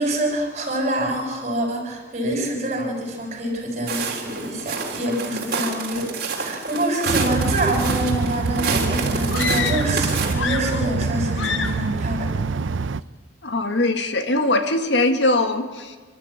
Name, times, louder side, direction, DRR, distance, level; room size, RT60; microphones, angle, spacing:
voice 1, 0.0-12.3, right 1 dB, 35° right, 0 dB, 6.4 m, -26 dB
Walk footsteps, 3.9-10.3, right 4 dB, 50° right, 3.4 m, -28 dB
sound 1, 7.1-13.0, right 4 dB, 85° right, 0.6 m, -25 dB
sound 2, 9.3-10.0 10.3-11.1 11.4-11.9, left 6 dB, 90° left, 1.3 m, -28 dB
voice 2, 13.4-16.0, left 2 dB, 70° left, 7 dB, 1.7 m, -21 dB
29.0 x 13.0 x 8.6 m, 1.4 s
head